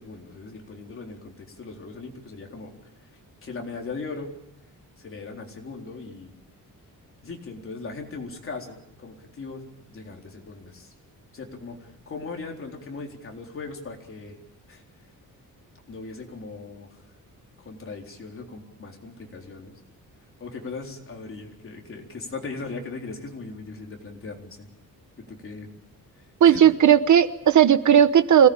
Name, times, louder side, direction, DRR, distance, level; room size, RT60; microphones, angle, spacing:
voice 1, 0.0-4.4 5.0-6.3 7.2-9.6 9.9-10.9 11.3-14.4 14.7-14.8 15.9-17.0 17.6-19.8 20.4-24.7 25.2-25.7 26.2-26.6, left 3 dB, 40° left, 1 dB, 4.0 m, -39 dB
voice 2, 26.4-28.5, right 9 dB, 55° right, 12 dB, 1.0 m, -16 dB
26.0 x 18.5 x 8.8 m, 0.85 s
wide cardioid pair, 160°, 34 cm